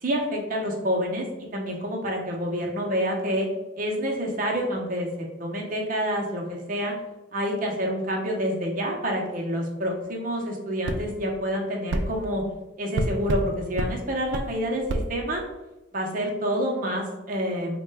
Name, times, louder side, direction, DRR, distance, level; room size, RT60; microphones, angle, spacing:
voice 1, 0.0-1.3 1.5-3.5 3.8-6.9 7.3-12.4 12.8-15.4 15.9-17.8, equal, 45° right, 0 dB, 0.7 m, -28 dB
sound 1, 10.8-11.0 11.9-12.1 12.9-13.5 13.8-13.9 14.3-14.5 14.9-15.1, right 2 dB, 70° right, 0.3 m, -26 dB
4.0 x 2.2 x 3.3 m, 1.1 s
head